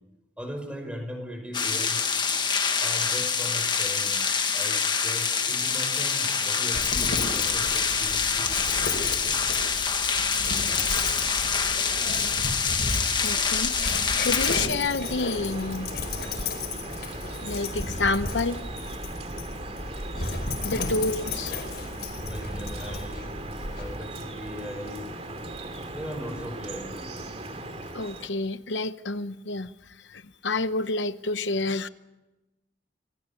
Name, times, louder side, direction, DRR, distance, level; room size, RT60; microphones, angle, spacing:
voice 1, 0.4-2.0 2.8-4.2 4.5-8.6 22.2-23.3 23.8-25.1 25.9-27.2, equal, 5° right, 5 dB, 5.3 m, -38 dB
sound 1, 1.5-14.7, left 5 dB, 25° left, 1.6 m, -26 dB
Dog, 6.7-24.0, left 3 dB, 55° left, 5.3 m, -33 dB
voice 2, 13.2-15.9 17.4-18.6 20.6-21.5 27.9-31.9, left 3 dB, 80° left, 12 dB, 0.9 m, -29 dB
Drip, 15.0-28.3, right 2 dB, 35° right, 2.6 m, -38 dB
27.0 x 21.0 x 8.5 m, 1.0 s
head